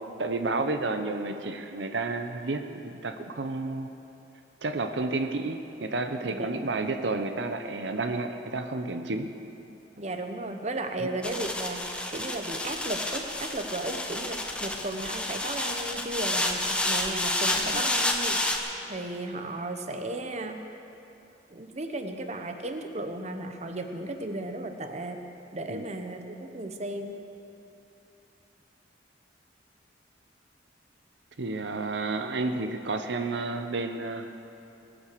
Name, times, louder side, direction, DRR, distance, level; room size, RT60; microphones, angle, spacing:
voice 1, 0.2-3.9 4.6-9.3 11.0-11.1 17.7-17.8 25.7-25.9 31.4-34.3, right 3 dB, 75° right, 7 dB, 0.8 m, -31 dB
voice 2, 6.2-6.8 10.0-11.8 12.1-18.4 18.9-20.6 21.5-25.2 25.5-27.2, right 2 dB, 40° right, 6 dB, 0.9 m, -35 dB
sound 1, 11.2-18.6, left 1 dB, 5° left, 1.0 m, -30 dB
20.5 x 8.8 x 6.7 m, 2.9 s
head